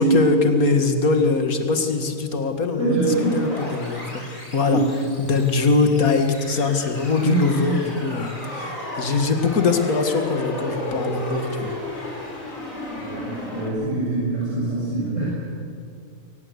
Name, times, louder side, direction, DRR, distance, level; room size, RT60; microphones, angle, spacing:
voice 1, 0.0-4.8 5.2-11.7, left 4 dB, 80° left, 6 dB, 2.4 m, -22 dB
voice 2, 2.8-3.4 4.6-5.0 7.2-7.8 13.0-15.3, right 3 dB, 60° right, -7 dB, 6.9 m, -24 dB
sound 1, 3.0-13.7, left 1 dB, 65° left, 4.6 m, -34 dB
22.5 x 19.5 x 8.2 m, 2.3 s
omnidirectional pair, 1.5 m